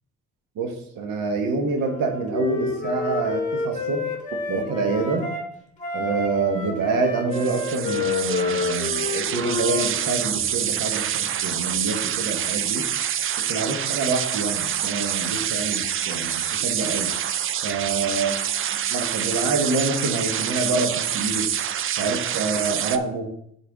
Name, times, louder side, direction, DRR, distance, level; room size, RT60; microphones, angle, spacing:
voice 1, 0.6-4.1 4.5-5.3 5.9-12.8 13.5-17.1 17.6-18.3 18.9-21.5 21.9-23.3, right 3 dB, 80° right, 4 dB, 1.4 m, -26 dB
Wind instrument woodwind instrument, 1.8-5.4 5.8-9.9, left 4 dB, 25° left, 1.9 m, -29 dB
sound 1, 7.3-23.0, right 9 dB, 40° right, 0.4 m, -26 dB
10.0 x 4.7 x 3.5 m, 0.72 s
cardioid pair, 110°, 32 cm